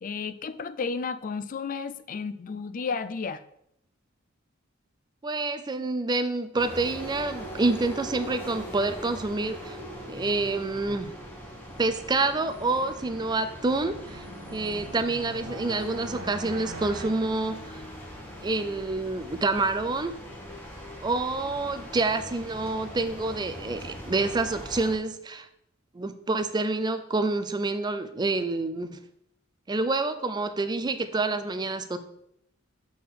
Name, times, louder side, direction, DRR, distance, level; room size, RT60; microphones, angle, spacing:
voice 1, 0.0-3.4, left 5 dB, 40° left, 13 dB, 0.4 m, -32 dB
voice 2, 5.2-9.8 10.1-11.1 11.8-14.3 14.5-17.8 18.4-20.2 21.0-25.5 25.9-29.0 29.7-32.0, right 3 dB, 20° right, 10 dB, 0.4 m, -28 dB
sound 1, 6.6-25.0, equal, 10° left, 1.3 m, -41 dB
sound 2, 13.4-18.3, right 1 dB, 75° right, 1.0 m, -43 dB
7.6 x 3.7 x 4.1 m, 0.75 s
head